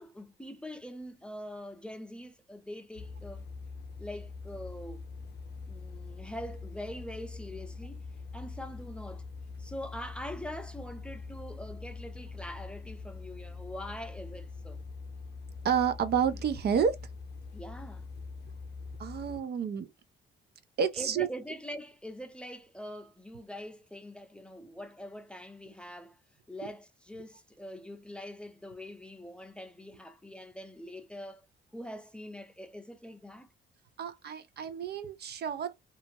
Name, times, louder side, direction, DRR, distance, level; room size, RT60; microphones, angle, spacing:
voice 1, 0.0-3.5 4.0-5.1 5.7-8.1 8.3-9.3 9.6-14.8 17.5-18.1 20.9-26.2 26.5-31.5 31.7-33.5, equal, 5° left, 0.6 m, -43 dB
sound 1, 2.9-19.4, left 4 dB, 55° left, 0.6 m, -44 dB
voice 2, 15.6-17.0 19.0-19.9 20.8-21.3 34.0-35.7, right 7 dB, 55° right, 0.5 m, -29 dB
2.7 x 2.4 x 2.7 m
cardioid pair, 90°, 20 cm